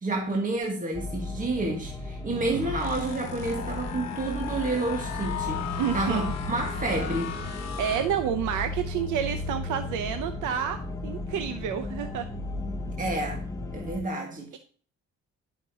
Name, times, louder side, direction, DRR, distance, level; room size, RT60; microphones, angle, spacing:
voice 1, 0.0-7.4 12.9-13.4 13.7-14.5, right 2 dB, 25° right, 1.7 m, -30 dB
sound 1, 0.9-14.0, left 2 dB, 10° left, 1.1 m, -35 dB
sound 2, 2.2-8.7, left 6 dB, 60° left, 1.2 m, -36 dB
voice 2, 5.8-6.3 7.8-10.8 11.0-12.3, right 9 dB, 85° right, 0.7 m, -29 dB
10.5 x 5.8 x 2.8 m
cardioid pair, 90°, 30 cm